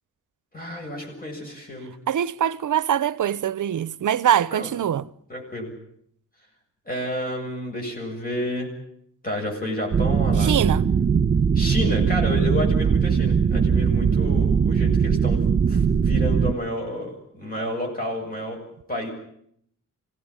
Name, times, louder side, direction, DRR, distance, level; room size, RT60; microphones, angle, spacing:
voice 1, 0.5-1.9 4.5-4.7 5.3-5.7 6.9-8.7 9.2-10.8 11.5-18.6 18.9-19.1, left 1 dB, 25° left, 7.6 m, -30 dB
voice 2, 2.1-5.1 10.4-10.8, right 10 dB, 70° right, 0.9 m, -23 dB
sound 1, 9.9-16.5, right 6 dB, 45° right, 1.3 m, -20 dB
26.0 x 18.0 x 10.0 m
wide cardioid pair, 120°, 31 cm